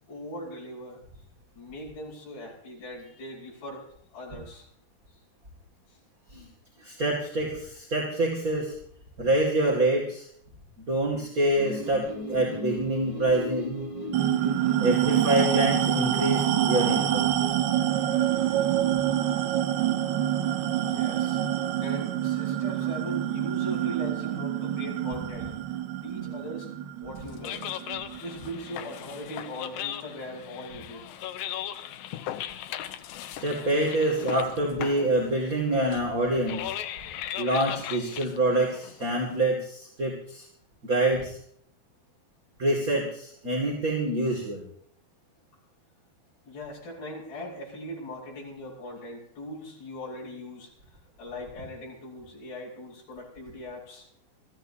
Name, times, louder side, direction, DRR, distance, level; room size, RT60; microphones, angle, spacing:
voice 1, 0.1-1.0 1.5-4.7 20.8-21.4 21.8-25.5 26.0-26.7 27.0-27.7 28.2-31.1 46.4-50.7 51.2-54.1, left 1 dB, 60° left, -7 dB, 8.1 m, -40 dB
voice 2, 6.8-8.7 9.2-10.3 10.8-13.9 14.8-17.3 33.3-36.7 37.4-40.4 40.8-41.4 42.6-44.6, right 1 dB, 30° right, -2 dB, 2.1 m, -26 dB
sound 1, 11.6-17.5, equal, 25° left, 5.7 m, -37 dB
sound 2, 14.1-29.0, right 11 dB, 85° right, 3.0 m, -27 dB
sound 3, 27.2-39.4, left 11 dB, 75° left, 2.4 m, -38 dB
24.5 x 14.5 x 2.8 m, 0.62 s
omnidirectional pair, 4.5 m